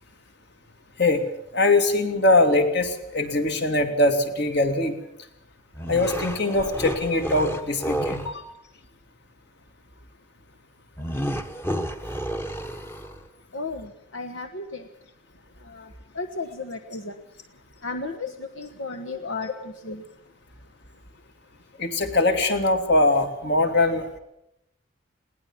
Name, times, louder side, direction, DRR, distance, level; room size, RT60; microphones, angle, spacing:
voice 1, 1.5-5.0 5.9-8.3 21.8-24.1, left 2 dB, 55° left, 6 dB, 2.6 m, -22 dB
sound 1, 5.7-8.4 11.0-13.3, right 1 dB, 10° left, 1.1 m, -31 dB
voice 2, 13.5-14.8 15.7-15.9 16.2-17.1 17.8-19.5 19.8-20.0, left 3 dB, 75° left, 5 dB, 1.3 m, -34 dB
21.0 x 18.0 x 7.3 m, 0.79 s
head